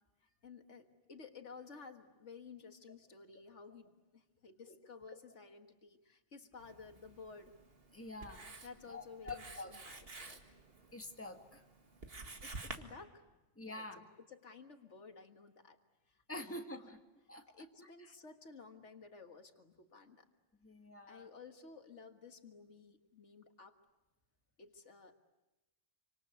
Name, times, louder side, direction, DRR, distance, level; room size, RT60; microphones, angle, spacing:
voice 1, 0.2-7.6 8.6-9.4 9.7-10.5 12.4-13.4 13.7-15.8 16.1-16.2 16.8-16.9 17.5-20.3 21.1-23.8 24.6-25.2, left 4 dB, 75° left, 6 dB, 2.0 m, -54 dB
Writing, 6.6-12.8, right 3 dB, 55° right, 2.1 m, -51 dB
voice 2, 7.9-8.5 8.9-10.0 10.9-11.6 13.6-14.0 16.3-17.0 17.3-17.5 17.8-17.9 20.6-21.3, left 2 dB, 10° left, 3 dB, 1.9 m, -47 dB
27.5 x 26.0 x 8.3 m, 1.1 s
omnidirectional pair, 1.2 m